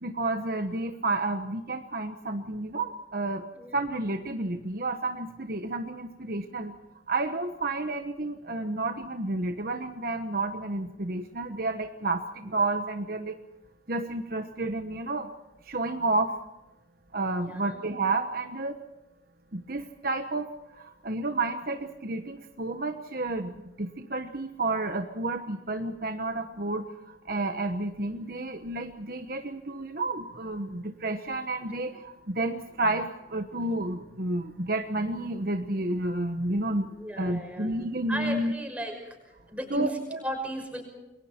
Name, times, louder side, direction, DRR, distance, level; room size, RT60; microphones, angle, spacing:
voice 1, 0.0-3.4 3.7-6.7 7.1-13.3 13.9-15.3 15.6-16.4 17.1-18.8 19.5-36.9 37.2-38.5 39.7-40.2, right 2 dB, 50° right, 6 dB, 1.2 m, -31 dB
voice 2, 17.4-17.8 37.0-37.7 38.1-39.0 39.5-40.8, equal, 5° right, 3 dB, 5.9 m, -35 dB
29.0 x 22.5 x 4.5 m, 0.98 s
head